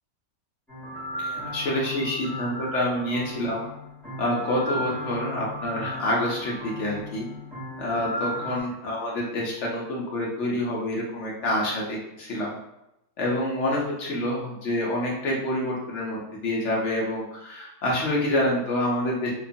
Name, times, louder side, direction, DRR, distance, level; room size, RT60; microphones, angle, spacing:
sound 1, 0.7-8.6, equal, ahead, 0.8 m, -35 dB
voice 1, 1.2-3.6 4.2-7.3 7.8-12.6 13.2-19.3, left 1 dB, 65° left, -3 dB, 0.7 m, -27 dB
2.8 x 2.3 x 2.6 m, 0.86 s
omnidirectional pair, 1.9 m